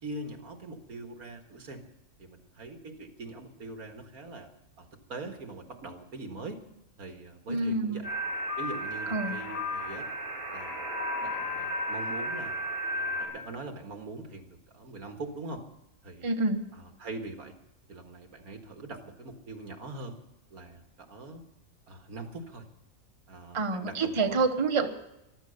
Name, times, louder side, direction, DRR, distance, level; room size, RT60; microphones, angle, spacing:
voice 1, 0.0-1.8 2.2-4.5 4.8-6.6 7.0-8.1 8.6-10.1 10.5-10.9 11.2-12.6 12.9-15.6 16.0-16.3 16.7-17.6 17.9-20.2 20.5-21.4 21.9-22.7 23.3-24.4, right 2 dB, 90° right, 6 dB, 2.3 m, -42 dB
voice 2, 7.5-8.0 9.1-9.4 16.2-16.7 23.5-24.9, right 3 dB, 25° right, 6 dB, 1.0 m, -27 dB
sound 1, 8.0-13.3, equal, 85° left, 6.9 m, -33 dB
14.5 x 12.0 x 6.7 m, 0.86 s
omnidirectional pair, 1.5 m